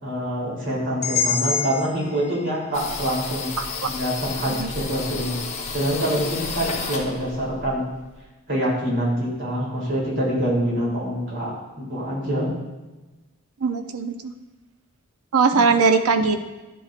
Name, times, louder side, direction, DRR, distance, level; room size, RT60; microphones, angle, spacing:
voice 1, 0.0-3.5 3.8-5.4 5.7-7.9 8.5-12.5, equal, 55° right, -5 dB, 3.3 m, -25 dB
sound 1, 1.0-5.0, left 6 dB, 50° left, 1.8 m, -30 dB
sound 2, 2.7-8.2, left 4 dB, 30° left, 1.1 m, -32 dB
voice 2, 13.6-14.3 15.3-16.5, right 4 dB, 80° right, 8 dB, 0.7 m, -20 dB
11.5 x 9.1 x 2.5 m, 1.1 s
head